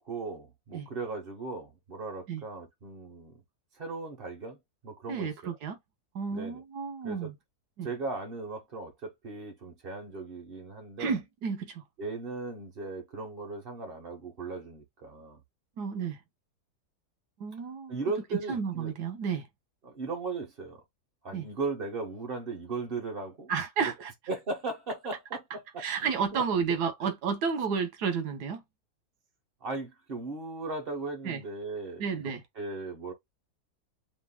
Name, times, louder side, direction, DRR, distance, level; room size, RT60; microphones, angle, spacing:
voice 1, 0.1-3.4 3.8-5.5 6.3-6.6 7.0-7.3 7.8-11.2 12.0-15.4 17.9-18.9 19.8-20.8 21.2-23.5 23.8-23.9 24.3-26.7 29.6-32.1 32.6-33.1, right 3 dB, 40° right, 1.2 m, -37 dB
voice 2, 5.1-5.8 6.1-7.3 7.8-7.9 11.0-11.8 15.8-16.2 17.4-18.0 18.5-19.5 21.3-21.4 23.5-24.1 25.8-28.6 31.2-31.4 32.0-32.4, right 6 dB, 80° right, 1.4 m, -31 dB
7.7 x 2.7 x 2.2 m
omnidirectional pair, 1.7 m